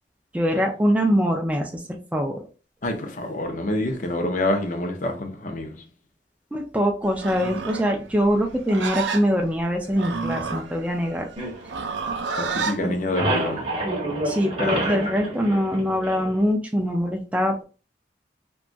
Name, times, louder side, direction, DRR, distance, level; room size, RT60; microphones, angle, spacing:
voice 1, 0.3-2.4 6.5-11.3 12.8-12.9 14.2-17.6, equal, 5° right, 0.3 m, -23 dB
voice 2, 2.8-5.8 12.4-13.7 14.6-14.9, left 1 dB, 45° left, 0.5 m, -27 dB
Livestock farm animals working animals, 7.1-12.8, right 5 dB, 80° right, 0.4 m, -30 dB
sound 1, 11.4-12.5 12.8-16.5, right 1 dB, 30° right, 0.7 m, -29 dB
2.8 x 2.2 x 2.6 m
head